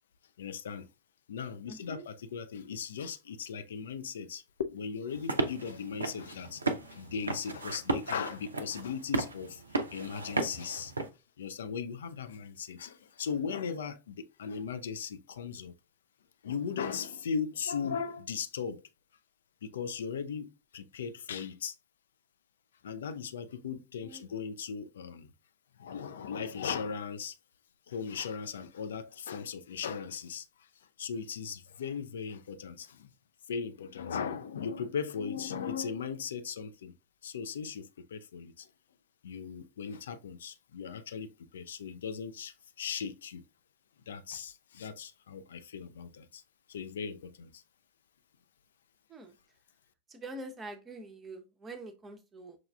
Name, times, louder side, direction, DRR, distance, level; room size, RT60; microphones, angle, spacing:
voice 1, 0.4-0.9 1.3-9.6 9.9-10.9 11.4-15.7 16.4-18.8 19.6-21.8 22.8-25.3 25.8-27.4 27.9-30.7 31.0-33.1 33.5-36.9 37.2-38.7 39.2-43.4 44.1-46.4 46.7-47.6, left 6 dB, 65° left, 0.3 m, -38 dB
voice 2, 1.7-2.0 24.0-24.4 49.1-49.3 50.1-52.6, right 2 dB, 20° right, 0.6 m, -45 dB
sound 1, 5.1-11.1, right 3 dB, 75° right, 0.4 m, -35 dB
6.0 x 2.3 x 2.2 m
figure-of-eight pair, 90°, 0 cm